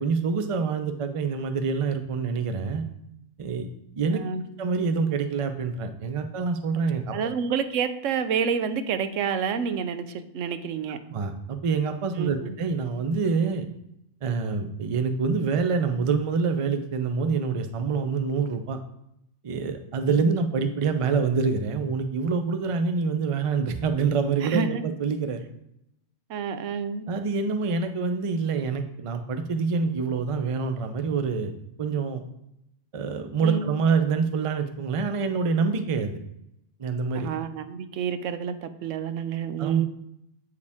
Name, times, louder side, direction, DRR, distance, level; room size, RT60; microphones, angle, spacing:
voice 1, 0.0-2.9 3.4-3.7 4.0-4.2 4.6-7.1 11.1-13.7 14.2-18.8 19.4-25.4 27.1-31.5 31.8-32.2 32.9-36.2 36.8-37.3 39.6-39.8, right 5 dB, 45° right, 7 dB, 0.4 m, -26 dB
voice 2, 4.1-4.4 7.1-11.0 12.1-12.5 24.4-24.8 26.3-27.1 33.4-33.9 37.1-39.9, right 7 dB, 85° right, 10 dB, 1.0 m, -29 dB
8.2 x 4.8 x 3.5 m, 0.80 s
omnidirectional pair, 1.3 m